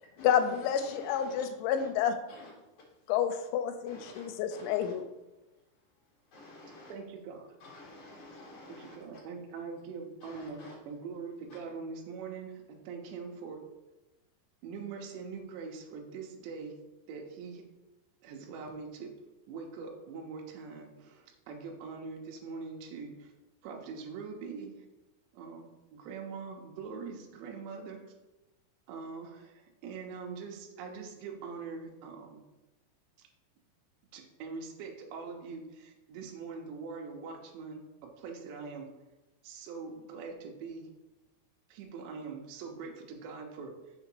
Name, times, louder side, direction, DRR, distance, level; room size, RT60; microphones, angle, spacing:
voice 1, 0.2-2.2 3.1-5.0, left 9 dB, 85° left, 8 dB, 3.0 m, -29 dB
voice 2, 1.0-1.4 1.8-1.9 2.3-2.5 3.9-4.9 6.3-6.9 7.6-9.0 10.2-10.7, left 2 dB, 55° left, -3 dB, 2.5 m, -50 dB
voice 3, 6.9-7.5 8.7-13.6 14.6-16.7 17.1-17.6 18.2-19.1 19.5-23.3 23.6-24.7 25.3-28.0 28.9-32.4 33.2-33.3 34.1-38.9 39.4-40.9 41.7-43.9, right 5 dB, 75° right, 1 dB, 3.1 m, -43 dB
6.9 x 5.0 x 4.6 m, 1.0 s
omnidirectional pair, 5.2 m